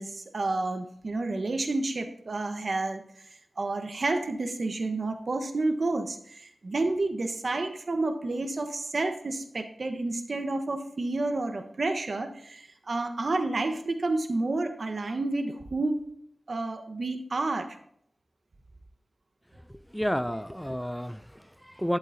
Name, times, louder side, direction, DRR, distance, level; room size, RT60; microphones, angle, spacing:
voice 1, 0.0-3.0 3.6-16.1 16.5-17.8, right 2 dB, 60° right, 1.1 m, -30 dB
voice 2, 19.7-22.0, equal, ahead, 0.3 m, -31 dB
11.5 x 7.7 x 2.7 m
cardioid pair, 55°, 0 cm